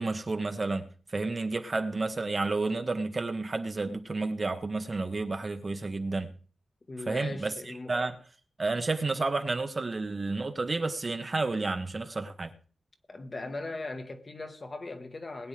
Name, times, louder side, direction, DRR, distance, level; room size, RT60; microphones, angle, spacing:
voice 1, 0.0-6.3 7.1-7.5 7.9-8.2 8.6-12.5, right 3 dB, 35° right, 1.2 m, -31 dB
voice 2, 6.9-7.9 13.1-15.5, left 2 dB, 35° left, 1.3 m, -39 dB
20.5 x 9.4 x 3.4 m
wide cardioid pair, 150°, 0 cm